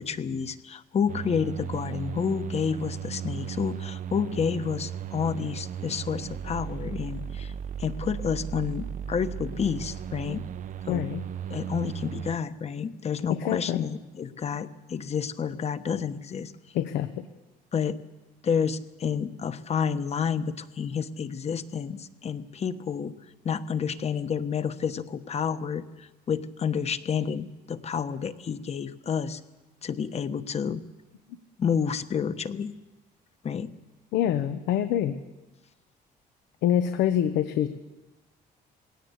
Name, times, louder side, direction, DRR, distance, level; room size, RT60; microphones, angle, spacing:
voice 1, 0.0-7.5 7.8-10.4 10.8-11.1 11.5-16.5 17.7-18.0 18.4-23.2 23.4-29.4 29.8-30.8 31.6-32.7 33.4-33.7, left 7 dB, 40° left, 12 dB, 1.2 m, -30 dB
sound 1, 1.1-12.4, right 9 dB, 50° right, 0.7 m, -36 dB
voice 2, 10.9-11.2 13.3-13.9 16.7-17.1 34.1-35.2 36.6-37.7, left 10 dB, 85° left, 9 dB, 1.1 m, -25 dB
21.0 x 17.5 x 8.2 m, 1.1 s
cardioid pair, 110°, 17 cm